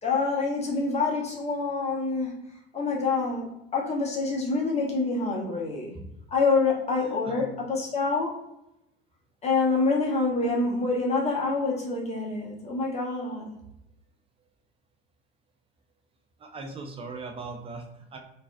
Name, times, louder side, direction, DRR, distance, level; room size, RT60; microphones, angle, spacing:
voice 1, 0.0-2.4 2.7-3.5 3.7-6.0 6.3-8.3 9.4-13.5, left 3 dB, 20° left, -2 dB, 1.1 m, -26 dB
voice 2, 7.0-7.5 16.4-18.2, right 3 dB, 20° right, 3 dB, 0.6 m, -39 dB
3.9 x 2.7 x 2.4 m, 0.83 s
figure-of-eight pair, 70°, 30 cm